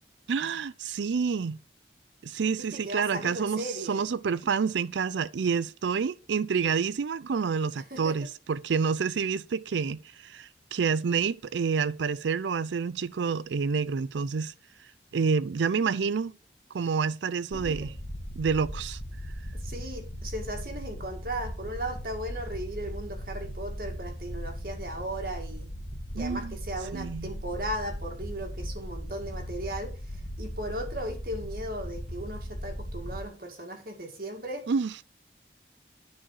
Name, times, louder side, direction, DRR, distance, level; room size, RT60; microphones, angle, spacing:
voice 1, 0.3-1.6 2.2-14.5 15.1-16.3 16.7-17.9 18.4-19.0 26.1-26.6 26.9-27.3 34.7-35.0, right 5 dB, 90° right, 0.4 m, -28 dB
voice 2, 2.6-4.0 7.9-8.3 17.5-17.9 19.5-25.7 26.1-34.7, right 1 dB, 55° right, 2.0 m, -37 dB
sound 1, 17.5-33.2, equal, 60° left, 1.9 m, -38 dB
10.0 x 4.9 x 4.7 m
head